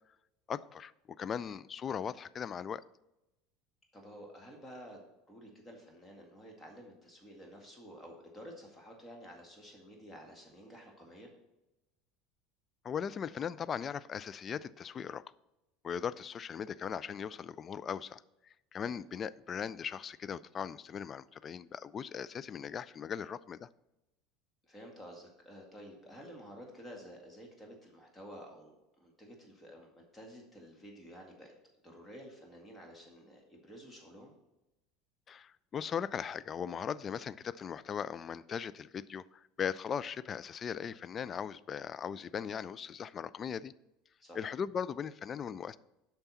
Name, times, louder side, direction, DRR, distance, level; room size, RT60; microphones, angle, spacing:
voice 1, 0.5-0.9 1.2-2.8 12.8-15.2 15.8-18.2 18.7-23.7 35.3-43.7 44.4-45.8, left 7 dB, 30° left, 17 dB, 0.3 m, -38 dB
voice 2, 3.9-5.0 5.3-11.3 18.8-18.9 24.6-28.8 29.0-31.5 31.8-34.3 44.2-44.4, equal, 15° left, 1 dB, 1.9 m, -51 dB
8.7 x 5.8 x 4.1 m, 0.96 s
figure-of-eight pair, 70°, 0 cm